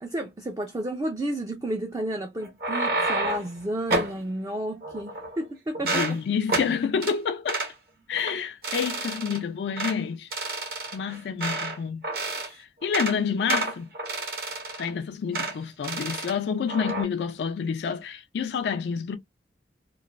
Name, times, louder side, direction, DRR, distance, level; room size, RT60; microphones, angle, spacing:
voice 1, 0.0-6.0, right 1 dB, 20° right, 0.4 m, -31 dB
sound 1, 2.4-3.5 3.9-4.2 4.8-5.4 5.7-6.2 6.5-6.7 7.0-7.2 7.5-7.7 8.2-8.3 8.6-9.4 9.8-10.0 10.3-11.8 12.0-12.5 12.8-13.2 13.5-14.9 15.3-15.5 15.8-16.3 16.7-17.0, right 2 dB, 60° right, 1.2 m, -29 dB
voice 2, 5.8-7.7 8.1-10.3 10.9-12.0 12.6-13.9 14.8-19.2, left 6 dB, 75° left, 0.3 m, -28 dB
3.1 x 2.5 x 2.4 m
head